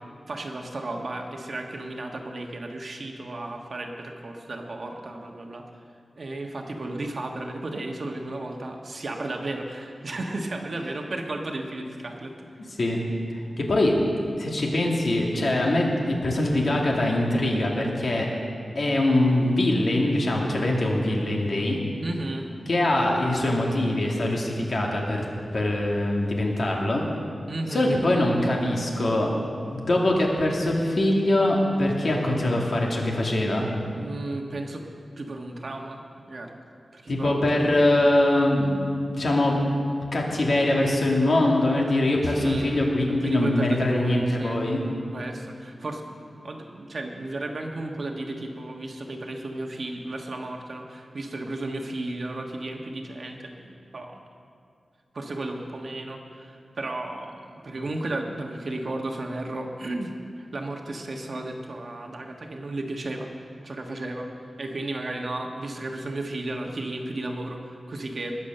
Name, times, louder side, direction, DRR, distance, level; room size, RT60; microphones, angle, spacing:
voice 1, 0.3-5.6 6.2-12.5 22.0-22.5 27.5-28.0 34.0-34.9 35.2-36.6 36.9-37.7 42.2-42.9 43.2-44.6 45.1-54.2 55.1-64.3 64.6-68.3, right 2 dB, 50° right, 2 dB, 1.3 m, -34 dB
voice 2, 13.6-13.9 14.4-18.3 18.7-21.8 22.7-25.2 25.5-27.0 27.7-29.3 29.6-33.7 37.1-39.6 40.1-44.8, left 1 dB, 55° left, -1 dB, 2.3 m, -23 dB
20.5 x 7.3 x 6.7 m, 2.3 s
wide cardioid pair, 130°, 0 cm